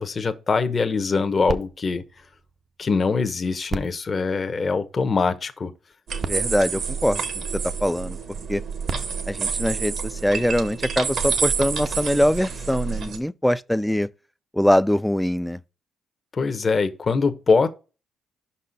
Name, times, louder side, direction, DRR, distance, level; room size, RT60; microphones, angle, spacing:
voice 1, 0.0-2.0 2.8-5.7 16.3-17.7, left 4 dB, 35° left, 0.8 m, -23 dB
sound 1, 1.5-3.1 3.6-5.2 5.9-6.0 6.2-7.8 8.6-10.4 11.1-11.2, right 4 dB, 45° right, 0.6 m, -36 dB
sound 2, 6.1-13.2, right 6 dB, 65° right, 1.2 m, -28 dB
voice 2, 6.3-7.2 7.5-8.2 8.5-8.6 9.3-14.1 14.5-15.6, equal, 5° left, 0.3 m, -22 dB
5.4 x 4.2 x 5.1 m
cardioid pair, 90°, 0 cm